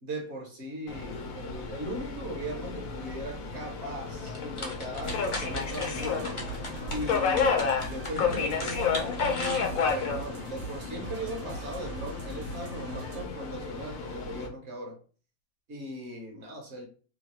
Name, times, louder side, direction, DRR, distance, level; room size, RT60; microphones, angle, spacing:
voice 1, 0.0-6.3 6.9-15.0 15.7-16.9, right 1 dB, 55° right, 1.0 m, -38 dB
Subway metro underground, 0.9-14.5, left 5 dB, 75° left, 1.1 m, -32 dB
sound 1, 4.3-10.1, left 1 dB, 30° left, 0.6 m, -38 dB
sound 2, 5.0-13.2, right 3 dB, 85° right, 1.2 m, -42 dB
2.9 x 2.3 x 3.0 m
omnidirectional pair, 1.5 m